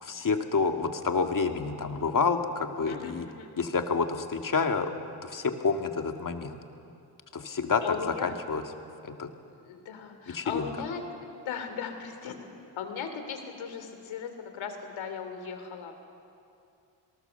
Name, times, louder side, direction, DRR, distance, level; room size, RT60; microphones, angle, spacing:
voice 1, 0.0-3.3 3.6-4.9 5.2-6.5 7.3-8.0 8.2-8.6 9.0-9.3 10.3-10.7, left 5 dB, 45° left, 5 dB, 2.2 m, -28 dB
voice 2, 2.9-3.5 7.8-8.3 9.7-12.3 12.8-15.9, left 6 dB, 80° left, 7 dB, 3.0 m, -37 dB
27.5 x 19.0 x 7.0 m, 2.6 s
cardioid pair, 70°, 46 cm